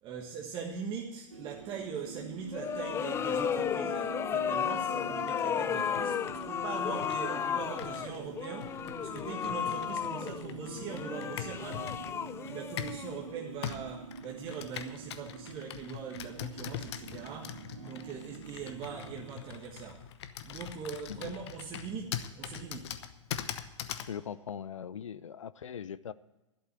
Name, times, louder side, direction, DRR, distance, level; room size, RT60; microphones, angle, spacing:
voice 1, 0.0-12.0 12.5-20.1 20.4-23.0, right 6 dB, 30° right, -1 dB, 1.5 m, -41 dB
sound 1, 1.3-19.3, right 4 dB, 80° right, 1.5 m, -46 dB
sound 2, 2.5-13.5, left 8 dB, 15° left, 0.4 m, -34 dB
Computer keyboard, 5.2-13.1 13.6-24.1, left 10 dB, 55° left, 0.9 m, -43 dB
voice 2, 24.1-26.1, left 8 dB, 80° left, 18 dB, 0.6 m, -40 dB
12.0 x 8.1 x 8.2 m, 1.0 s
figure-of-eight pair, 110°, 16 cm